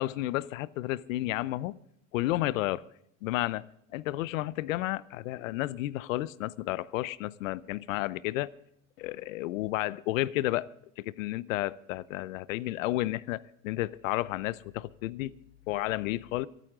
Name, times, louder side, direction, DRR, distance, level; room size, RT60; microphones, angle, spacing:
voice 1, 0.0-1.8 2.1-2.8 3.2-3.7 3.9-8.5 9.0-10.7 11.0-15.3 15.7-16.5, left 17 dB, 75° left, 0.7 m, -32 dB
27.0 x 9.3 x 3.7 m
hypercardioid pair, 110°, 40 cm